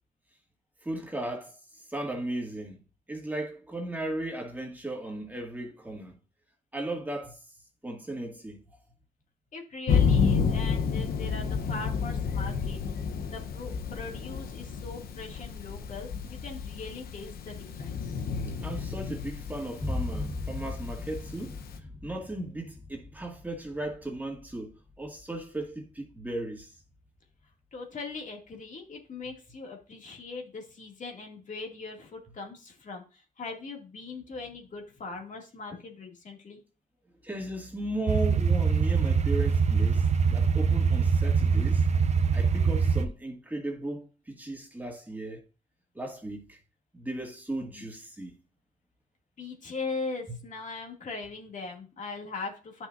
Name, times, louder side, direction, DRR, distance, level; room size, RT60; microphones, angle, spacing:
voice 1, 0.8-2.8 3.1-6.2 6.7-7.4 7.8-8.6 18.6-26.7 37.2-41.9 42.3-45.4 45.9-46.6 46.9-48.3, right 1 dB, 10° right, 2.1 m, -36 dB
voice 2, 9.5-12.8 13.2-18.1 27.7-36.6 47.6-47.9 49.4-52.9, left 3 dB, 55° left, 2.3 m, -40 dB
Thunder, 9.9-21.8, left 6 dB, 80° left, 0.9 m, -30 dB
sound 1, 19.8-27.2, left 2 dB, 25° left, 1.1 m, -39 dB
sound 2, 38.1-43.1, right 5 dB, 45° right, 0.6 m, -24 dB
10.5 x 6.1 x 2.6 m
cardioid pair, 90°, 15 cm